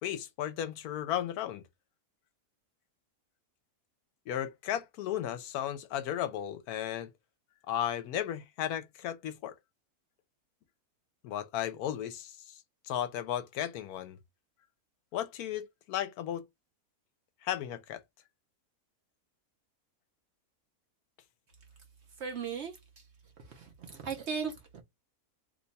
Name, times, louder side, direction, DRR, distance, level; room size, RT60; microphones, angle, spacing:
voice 1, 0.0-1.6 4.3-7.1 7.7-9.5 11.2-12.6 12.8-14.2 15.1-16.4 17.4-18.0, left 11 dB, 80° left, 1.0 m, -35 dB
voice 2, 22.2-23.1 23.4-24.8, right 6 dB, 60° right, 0.8 m, -38 dB
2.9 x 2.2 x 3.9 m
omnidirectional pair, 1.6 m